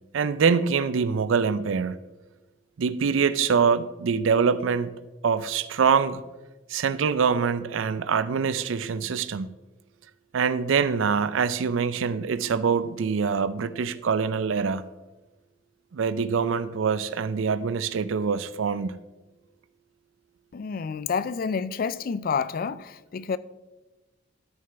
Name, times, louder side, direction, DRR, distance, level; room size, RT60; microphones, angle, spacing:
voice 1, 0.1-1.9 2.8-4.9 5.2-6.2 6.7-9.5 10.3-14.8 15.9-18.9, right 6 dB, 85° right, 0.4 m, -24 dB
voice 2, 20.5-23.4, left 5 dB, 50° left, 0.3 m, -29 dB
12.5 x 6.5 x 3.4 m
head